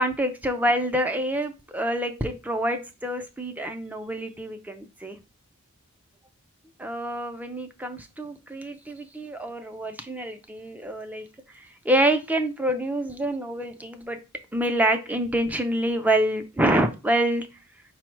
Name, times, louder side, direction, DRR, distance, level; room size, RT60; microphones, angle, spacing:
voice 1, 0.0-5.2 6.8-11.3 11.5-14.2 14.5-17.5, right 1 dB, 5° right, 7 dB, 0.4 m, -26 dB
5.0 x 2.0 x 4.4 m, 0.29 s
head